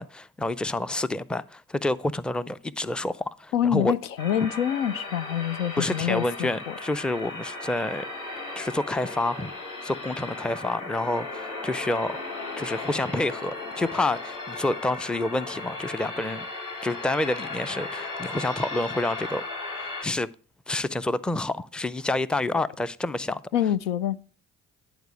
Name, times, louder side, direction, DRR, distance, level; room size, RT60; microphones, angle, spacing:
voice 1, 0.0-3.9 5.8-8.0 8.6-9.5 9.8-12.1 12.6-16.5 16.8-19.4 19.8-20.3 20.7-23.4, left 2 dB, 5° left, 0.4 m, -28 dB
voice 2, 3.5-6.7 23.5-24.2, left 10 dB, 90° left, 0.5 m, -26 dB
sound 1, 4.2-20.0, left 2 dB, 55° left, 3.4 m, -36 dB
10.5 x 4.5 x 6.2 m
hypercardioid pair, 50°, 37 cm